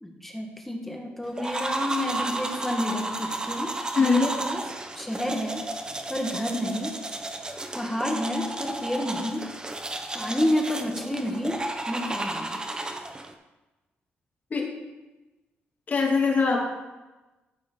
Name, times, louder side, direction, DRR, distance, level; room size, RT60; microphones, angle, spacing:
voice 1, 0.0-4.6 4.9-5.7 6.1-7.0 7.7-9.5 10.1-12.5, left 1 dB, 5° left, 1 dB, 1.5 m, -30 dB
sound 1, 1.4-13.3, right 2 dB, 20° right, 1.0 m, -33 dB
voice 2, 3.9-4.3 14.5-14.7 15.9-16.6, left 4 dB, 45° left, -2 dB, 2.8 m, -21 dB
14.0 x 7.5 x 3.9 m, 1.1 s
cardioid pair, 105°, 4 cm